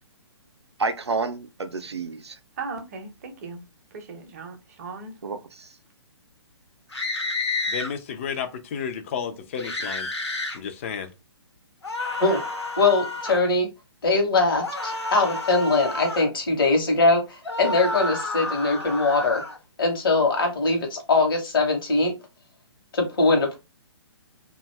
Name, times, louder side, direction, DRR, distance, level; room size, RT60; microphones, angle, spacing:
voice 1, 0.8-2.4 5.2-5.7, right 4 dB, 75° right, 0.5 m, -29 dB
voice 2, 2.6-3.6 3.9-5.1, right 4 dB, 35° right, 0.7 m, -37 dB
sound 1, 6.9-7.9 9.6-10.6 11.8-13.4 14.6-16.3 17.4-19.6, left 2 dB, 75° left, 0.9 m, -30 dB
voice 3, 7.7-10.1 10.5-11.1, left 7 dB, 30° left, 0.4 m, -32 dB
voice 4, 12.8-13.7 14.0-19.4 19.8-22.1 22.9-23.6, left 3 dB, 55° left, 0.9 m, -22 dB
2.5 x 2.3 x 3.1 m
figure-of-eight pair, 125°, 14 cm